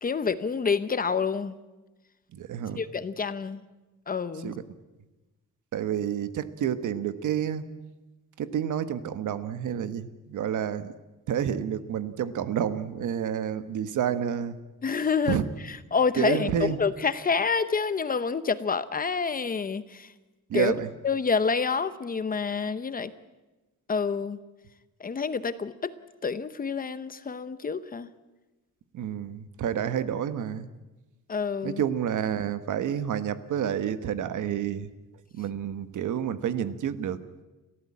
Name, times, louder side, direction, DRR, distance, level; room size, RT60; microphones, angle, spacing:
voice 1, 0.0-1.5 2.8-3.6 4.1-4.5 14.8-15.4 15.7-20.1 20.5-20.7 21.0-23.1 23.9-24.4 25.0-25.9 26.2-28.1 31.3-31.8, left 5 dB, 25° left, 13 dB, 0.8 m, -28 dB
voice 2, 2.3-2.8 4.4-4.6 5.7-7.7 8.4-10.9 11.3-14.6 15.3-15.5 16.2-16.8 20.5-20.9 28.9-30.7 31.6-34.9 35.3-37.4, right 9 dB, 70° right, 12 dB, 1.3 m, -29 dB
29.5 x 14.5 x 8.5 m, 1.1 s
wide cardioid pair, 175°, 32 cm